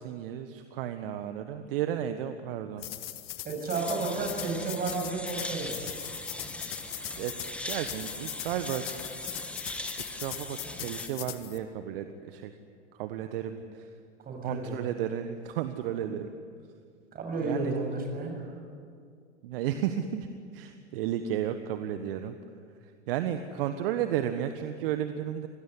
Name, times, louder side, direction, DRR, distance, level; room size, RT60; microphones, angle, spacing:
voice 1, 0.0-2.8 7.2-7.4 7.7-8.9 10.1-12.5 13.0-13.9 14.4-16.3 17.4-17.7 19.4-20.3 20.5-22.3 23.1-25.5, right 10 dB, 50° right, 9 dB, 1.4 m, -33 dB
sound 1, 2.8-11.6, left 14 dB, 55° left, 1.7 m, -40 dB
voice 2, 3.4-5.9 14.3-14.7 17.1-18.3, right 3 dB, 25° right, 2 dB, 7.3 m, -32 dB
sound 2, 3.7-11.1, left 1 dB, 5° left, 2.1 m, -40 dB
26.5 x 19.5 x 9.8 m, 2.3 s
figure-of-eight pair, 95°, 35 cm